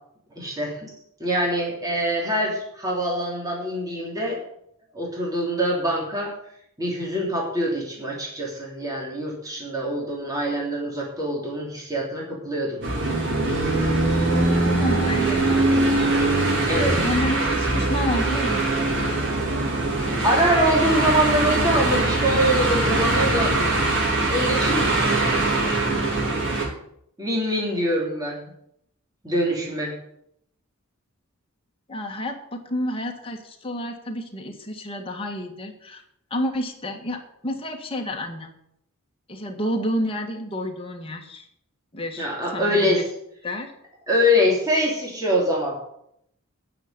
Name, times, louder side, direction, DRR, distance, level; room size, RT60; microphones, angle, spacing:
voice 1, 0.3-0.9 1.2-4.4 4.9-6.3 6.8-12.8 16.7-17.0 20.2-23.7 24.3-25.4 27.2-28.5 29.2-30.0 42.2-43.0 44.1-45.8, equal, 15° right, -3 dB, 3.2 m, -24 dB
sound 1, 12.8-26.6, right 2 dB, 60° right, 4.2 m, -22 dB
voice 2, 14.8-16.1 17.0-18.7 18.9-19.1 31.9-36.0 36.3-38.5 39.3-41.4 41.9-42.3 42.5-43.0 43.4-43.7, left 1 dB, 25° left, 2 dB, 1.8 m, -30 dB
9.9 x 6.8 x 9.0 m, 0.74 s
head